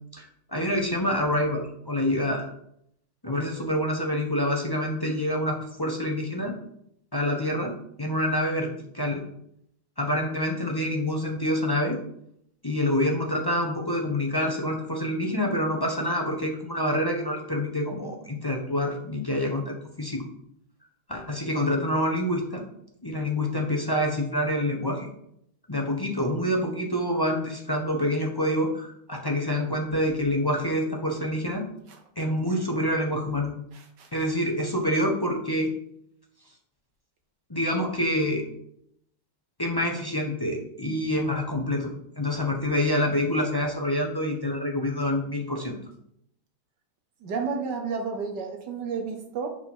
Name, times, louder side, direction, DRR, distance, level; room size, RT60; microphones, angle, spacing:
voice 1, 0.1-2.5 3.2-6.5 7.1-7.7 8.0-9.2 10.0-12.0 12.6-20.2 21.1-22.6 23.0-25.1 25.7-31.6 32.2-33.5 34.1-35.7 37.5-38.5 39.6-45.8, left 1 dB, 20° left, 0 dB, 0.5 m, -27 dB
voice 2, 33.7-34.1 47.2-49.5, right 5 dB, 65° right, 4 dB, 1.5 m, -32 dB
6.5 x 5.1 x 5.4 m, 0.72 s
omnidirectional pair, 2.1 m